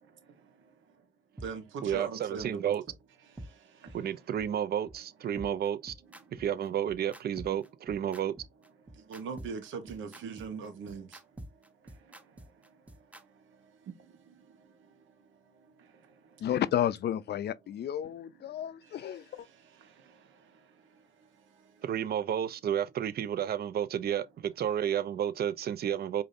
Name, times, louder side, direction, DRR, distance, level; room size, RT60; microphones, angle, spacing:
voice 1, 0.0-0.7 1.4-2.7 3.3-4.0 6.2-6.3 8.9-11.2 11.5-16.5 18.1-18.2 18.6-21.9, right 5 dB, 85° right, 1.1 m, -45 dB
sound 1, 1.4-1.5 1.9-2.0 2.4-2.5 2.9-3.0 3.4-3.5 3.9-4.0 4.4-4.5 4.9-5.0 5.4-13.2, right 1 dB, 5° right, 0.7 m, -46 dB
voice 2, 1.8-2.8 3.9-5.9 6.3-8.3 21.8-26.2, right 9 dB, 55° right, 0.5 m, -31 dB
voice 3, 16.4-19.5, left 10 dB, 60° left, 0.4 m, -32 dB
4.9 x 2.6 x 2.6 m
cardioid pair, 80°, 19 cm